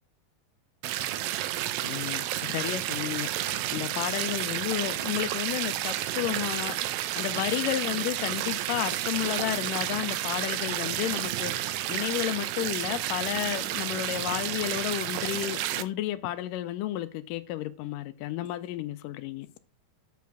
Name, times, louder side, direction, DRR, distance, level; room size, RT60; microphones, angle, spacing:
sound 1, 0.8-15.8, right 13 dB, 90° right, 2.4 m, -31 dB
voice 1, 1.8-19.5, left 14 dB, 80° left, 2.0 m, -32 dB
8.2 x 4.6 x 4.6 m
omnidirectional pair, 4.2 m